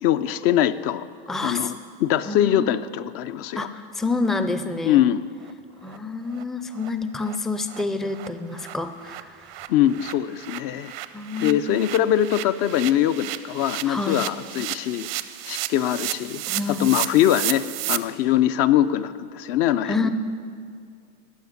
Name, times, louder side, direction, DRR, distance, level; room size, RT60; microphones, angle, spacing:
voice 1, 0.0-1.0 1.4-3.6 4.8-5.2 9.7-10.9 11.4-15.1 15.4-16.4 16.8-20.1, left 11 dB, 55° left, 13 dB, 0.5 m, -22 dB
voice 2, 1.3-1.7 2.3-2.8 3.5-5.0 5.8-9.4 11.1-11.6 13.9-14.3 16.5-17.0 19.8-20.1, left 3 dB, ahead, 9 dB, 0.4 m, -28 dB
sound 1, 5.0-5.1 5.4-5.5 5.9-6.0 6.3-6.4 6.8-6.9 7.2-7.4 7.7-7.8 8.1-18.0, right 16 dB, 80° right, 0.7 m, -33 dB
14.0 x 5.7 x 9.5 m, 2.3 s
supercardioid pair, 125°, 29 cm